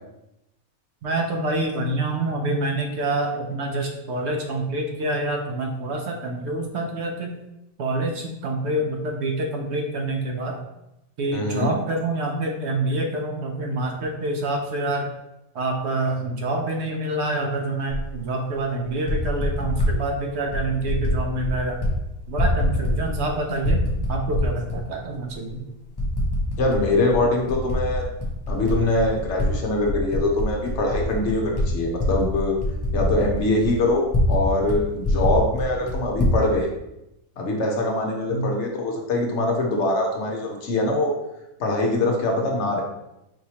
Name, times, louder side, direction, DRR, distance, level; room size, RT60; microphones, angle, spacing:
voice 1, 1.0-7.3 7.8-10.6 11.2-15.1 15.5-21.8 22.3-25.6 38.3-38.5, right 2 dB, 65° right, 2 dB, 0.8 m, -27 dB
voice 2, 11.3-11.7 26.6-28.1 28.5-32.5 32.9-36.7 37.4-41.1 41.6-42.8, left 2 dB, 60° left, 1 dB, 0.9 m, -23 dB
Typing, 17.9-18.0 18.9-19.9 20.5-21.2 21.4-21.9 22.2-23.3 23.6-24.8 25.3-25.4 26.0-26.8 27.1-29.5 29.8-34.4 34.7-34.8 35.0-36.4, left 1 dB, 25° left, 0.5 m, -24 dB
4.7 x 3.0 x 2.8 m, 0.89 s
omnidirectional pair, 1.5 m